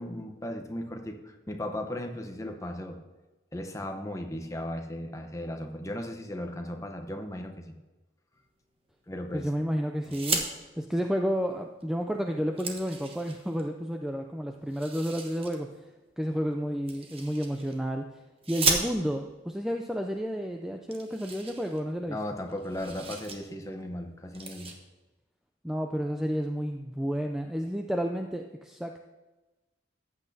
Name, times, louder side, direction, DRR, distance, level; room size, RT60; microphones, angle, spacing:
voice 1, 0.0-3.0 3.5-7.5 9.1-9.5 22.1-24.7, left 1 dB, 15° left, 4 dB, 0.8 m, -36 dB
voice 2, 9.3-10.4 10.8-15.7 16.2-18.1 18.5-22.2 25.6-29.0, equal, 5° right, 3 dB, 0.3 m, -31 dB
sound 1, 10.0-10.5 11.8-11.9 12.2-13.6 14.7-15.6 16.9-17.8 18.4-19.3 20.2-20.3 20.5-20.6 20.9-22.2 22.5-23.4 23.7-23.9 24.3-24.7, right 4 dB, 30° right, 1.0 m, -34 dB
14.0 x 8.4 x 2.7 m, 1.1 s
head